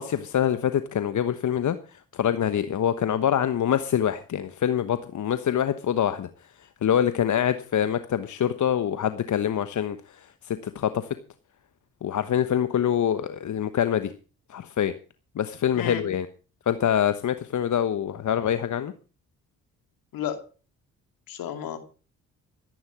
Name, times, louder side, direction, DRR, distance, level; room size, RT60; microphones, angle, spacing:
voice 1, 0.0-6.3 6.6-11.1 12.0-14.1 14.5-14.9 15.3-16.3 16.7-18.9, left 9 dB, 55° left, 11 dB, 1.2 m, -25 dB
voice 2, 20.1-20.4 21.3-21.8, left 9 dB, 75° left, 8 dB, 2.8 m, -32 dB
14.0 x 11.0 x 6.2 m, 0.36 s
hypercardioid pair, 50°, 35 cm